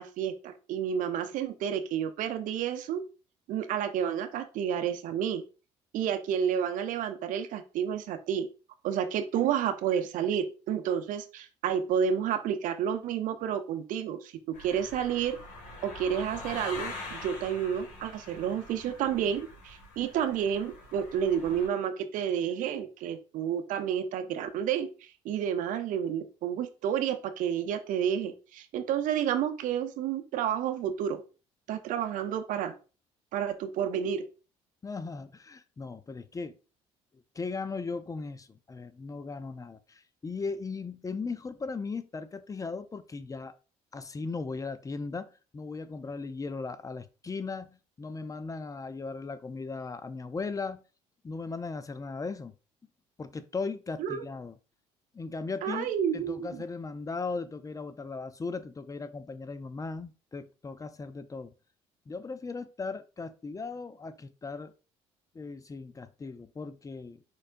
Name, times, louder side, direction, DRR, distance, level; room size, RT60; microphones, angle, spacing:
voice 1, 0.0-3.0 3.5-5.4 5.9-8.5 8.8-14.3 14.6-15.4 15.8-31.2 31.7-32.7 33.3-34.2 54.0-54.2 55.6-56.6, right 8 dB, 70° right, 0.7 m, -30 dB
sound 1, 14.5-21.7, left 2 dB, 65° left, 2.3 m, -44 dB
voice 2, 34.8-36.6 37.4-43.5 43.9-45.3 45.5-47.7 48.0-50.8 51.2-52.5 53.2-54.5 55.1-61.5 62.1-64.7 65.3-67.2, left 4 dB, 25° left, 0.5 m, -37 dB
4.7 x 4.3 x 2.6 m
supercardioid pair, 75°, 14 cm